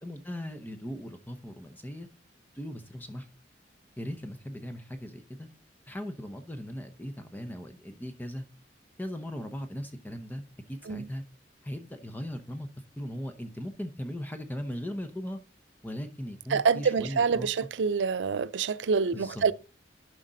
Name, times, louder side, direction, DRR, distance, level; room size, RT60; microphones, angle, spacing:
voice 1, 0.0-2.1 2.5-3.3 4.0-5.5 5.9-8.4 9.0-11.2 11.6-12.7 13.0-15.4 15.8-17.5 19.1-19.4, equal, 10° left, 0.8 m, -38 dB
voice 2, 16.5-19.5, right 5 dB, 90° right, 0.5 m, -26 dB
11.5 x 5.0 x 3.9 m
head